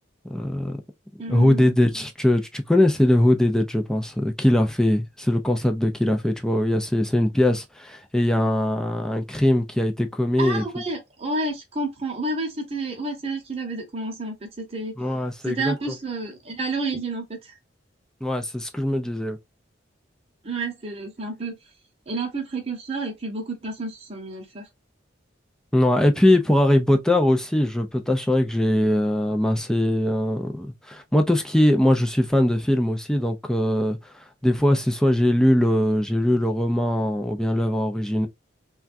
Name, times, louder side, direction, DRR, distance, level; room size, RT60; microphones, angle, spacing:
voice 1, 0.3-0.8 1.3-10.8 15.0-15.8 18.2-19.4 25.7-34.0 34.4-38.3, left 1 dB, 5° left, 0.4 m, -21 dB
voice 2, 1.2-1.7 10.4-14.9 15.4-17.5 20.4-21.6 22.1-24.6, right 2 dB, 30° right, 0.9 m, -30 dB
3.4 x 2.3 x 2.5 m
head